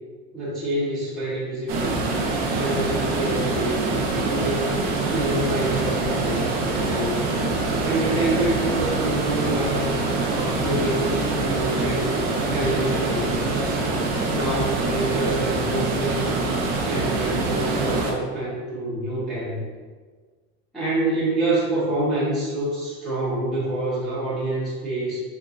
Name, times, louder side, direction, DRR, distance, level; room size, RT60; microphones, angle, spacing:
voice 1, 0.3-2.1 2.5-4.8 5.1-7.2 7.8-10.0 10.2-12.1 12.5-13.8 14.3-16.4 16.9-19.7 20.7-25.2, right 2 dB, ahead, -13 dB, 0.8 m, -27 dB
sound 1, 1.7-18.1, right 3 dB, 30° right, 0.4 m, -25 dB
3.4 x 3.1 x 2.5 m, 1.4 s
cardioid pair, 165°, 31 cm